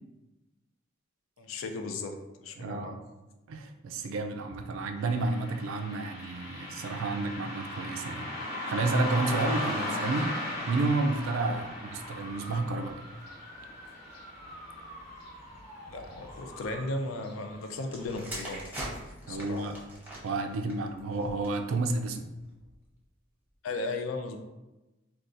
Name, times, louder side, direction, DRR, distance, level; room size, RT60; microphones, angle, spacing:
voice 1, 1.4-3.0 15.9-18.6 19.3-19.7 23.6-24.4, left 2 dB, 75° left, 5 dB, 0.4 m, -36 dB
voice 2, 2.6-3.0 3.5-10.4 10.7-13.0 19.3-19.8 20.2-22.3, right 3 dB, 75° right, 6 dB, 0.4 m, -31 dB
Car passing by, 5.0-15.8 16.1-16.2 17.1-17.3 17.8-17.9 18.4-18.5, left 1 dB, 60° left, 1.0 m, -37 dB
sound 1, 10.0-16.8, equal, 30° left, 1.0 m, -47 dB
sound 2, 17.9-21.7 22.5-22.8, right 1 dB, 10° right, 0.7 m, -42 dB
3.9 x 2.3 x 2.5 m, 1.1 s
head